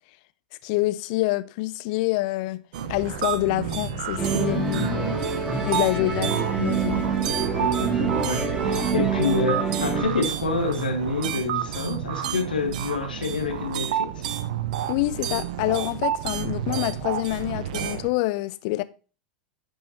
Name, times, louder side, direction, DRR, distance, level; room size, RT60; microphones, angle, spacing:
voice 1, 0.6-2.6 2.9-4.9 5.7-7.0 14.9-18.8, left 19 dB, 50° left, 0.5 m, -26 dB
sound 1, 2.7-18.1, right 10 dB, 60° right, 0.8 m, -30 dB
sound 2, 2.8-9.2, equal, 45° right, 1.6 m, -39 dB
Musical instrument, 4.2-10.0, right 5 dB, 10° right, 3.2 m, -26 dB
voice 2, 4.7-5.2 6.0-6.1 7.5-14.2, left 3 dB, 80° left, 1.6 m, -28 dB
10.5 x 5.6 x 2.8 m
figure-of-eight pair, 90°, 5 cm